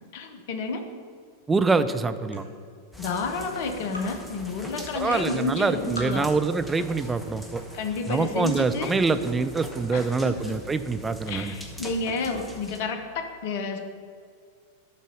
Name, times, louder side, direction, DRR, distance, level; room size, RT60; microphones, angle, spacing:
voice 1, 0.1-0.9 3.0-6.3 7.7-9.0 9.9-10.5 11.3-13.8, left 4 dB, 50° left, 6 dB, 0.9 m, -30 dB
sound 1, 1.5-8.0, left 1 dB, 75° left, 2.4 m, -46 dB
voice 2, 1.5-2.4 5.0-7.6 8.1-11.5, right 4 dB, 15° right, 9 dB, 0.5 m, -25 dB
sound 2, 2.9-12.8, left 1 dB, 5° left, 1.2 m, -42 dB
11.5 x 4.1 x 6.3 m, 2.1 s
figure-of-eight pair, 90°, 0 cm